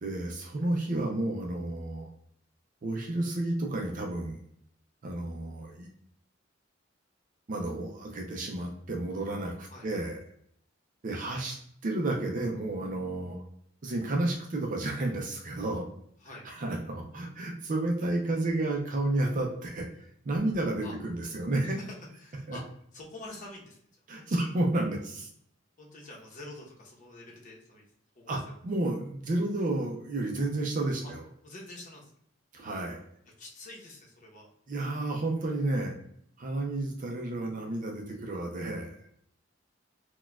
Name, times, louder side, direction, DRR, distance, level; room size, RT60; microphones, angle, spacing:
voice 1, 0.0-2.1 2.8-4.4 5.0-5.9 7.5-10.2 11.0-11.6 11.8-13.4 13.8-15.9 16.4-21.8 22.5-22.6 24.1-25.3 28.3-31.3 32.5-33.0 34.7-35.9 36.4-39.0, right 2 dB, 45° right, 1 dB, 0.5 m, -31 dB
voice 2, 21.6-22.6 22.9-23.8 24.1-24.5 25.8-27.8 28.1-28.5 31.0-31.1 31.4-32.1 33.2-34.5, left 2 dB, 45° left, -2 dB, 0.9 m, -47 dB
4.2 x 2.2 x 2.3 m, 0.69 s
head